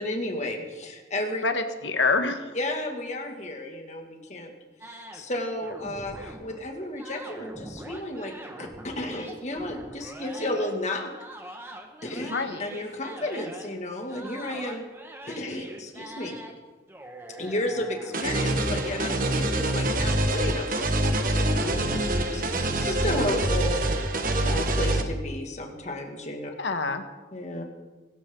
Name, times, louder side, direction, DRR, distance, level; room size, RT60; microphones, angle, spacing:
voice 1, 0.0-1.4 2.5-4.5 4.9-8.3 8.6-11.1 12.0-12.3 12.6-14.8 15.3-16.4 17.4-22.4 22.8-23.8 24.4-26.5 27.3-27.6, left 1 dB, 40° left, 3 dB, 2.4 m, -33 dB
voice 2, 1.4-2.5 12.3-12.6 21.9-22.4 26.6-27.0, left 3 dB, 90° left, 7 dB, 1.6 m, -27 dB
sound 1, 4.8-6.6 7.0-10.7 11.1-13.7 14.1-16.5 16.9-19.0, right 1 dB, 15° right, 1.8 m, -43 dB
sound 2, 18.1-25.0, right 1 dB, 50° right, 1.5 m, -25 dB
24.5 x 14.0 x 4.0 m, 1.2 s
head